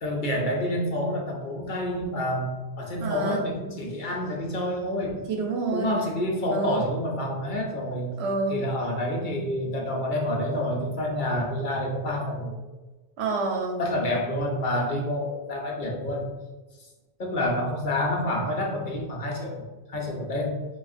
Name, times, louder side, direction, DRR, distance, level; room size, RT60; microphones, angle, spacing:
voice 1, 0.0-5.2 5.7-8.1 8.5-12.6 13.8-16.3 17.2-20.7, left 1 dB, 55° left, -1 dB, 0.7 m, -28 dB
voice 2, 3.0-3.4 5.3-5.9 6.5-6.8 8.2-8.6 13.2-13.8, right 3 dB, 75° right, 1 dB, 0.9 m, -28 dB
4.7 x 2.4 x 2.5 m, 1.2 s
omnidirectional pair, 1.1 m